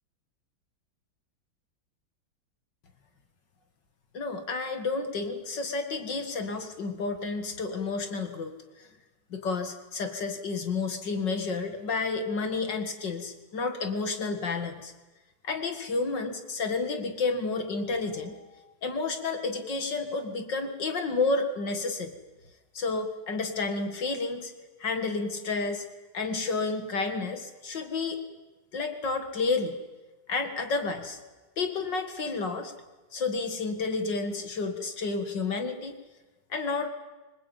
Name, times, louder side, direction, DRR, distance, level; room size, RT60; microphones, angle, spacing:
voice 1, 4.1-8.9 9.3-14.9 15.4-22.2 22.7-24.5 24.8-25.8 26.1-28.2 28.7-29.8 30.3-31.2 31.6-32.7 33.1-35.9 36.5-36.9, left 3 dB, 60° left, 7 dB, 2.5 m, -31 dB
25.5 x 20.5 x 9.1 m, 1.2 s
omnidirectional pair, 2.3 m